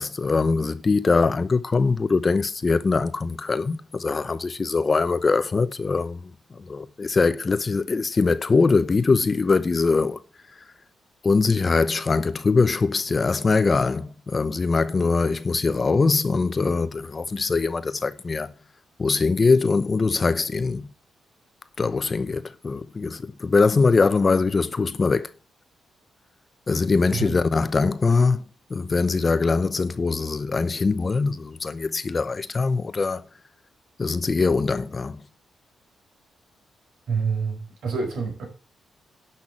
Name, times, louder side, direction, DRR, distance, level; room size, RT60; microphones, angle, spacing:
voice 1, 0.0-6.3 6.6-10.2 11.2-18.5 19.0-20.9 21.8-25.3 26.7-28.4 28.7-33.2 34.0-35.2, left 4 dB, 30° left, 0.8 m, -22 dB
voice 2, 37.1-38.5, right 5 dB, 75° right, 5.5 m, -27 dB
11.0 x 5.9 x 7.3 m
cardioid pair, 120°, 0 cm